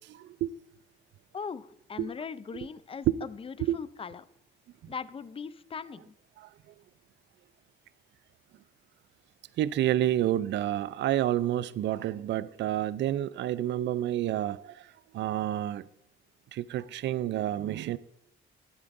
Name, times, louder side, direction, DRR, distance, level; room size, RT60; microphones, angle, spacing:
voice 1, 0.1-0.5 2.0-2.1 3.6-3.8 6.4-6.5 9.6-14.7 15.1-15.9 16.5-18.0, right 12 dB, 65° right, 0.4 m, -29 dB
voice 2, 1.3-4.2 4.9-6.1, left 5 dB, 30° left, 0.5 m, -39 dB
12.5 x 10.0 x 2.6 m
cardioid pair, 90°, 20 cm